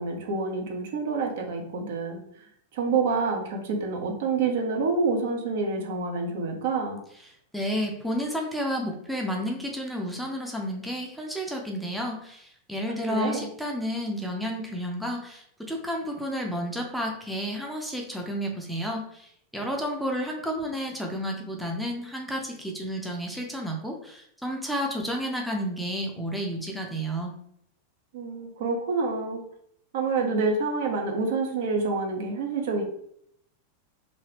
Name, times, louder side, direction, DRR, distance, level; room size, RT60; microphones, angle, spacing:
voice 1, 0.0-2.5 2.7-7.0 13.1-13.5 28.1-29.4 29.9-32.8, right 4 dB, 55° right, 2 dB, 0.7 m, -27 dB
voice 2, 7.5-27.3, equal, ahead, 0 dB, 0.6 m, -31 dB
2.9 x 2.7 x 3.0 m, 0.70 s
figure-of-eight pair, 90°, 0 cm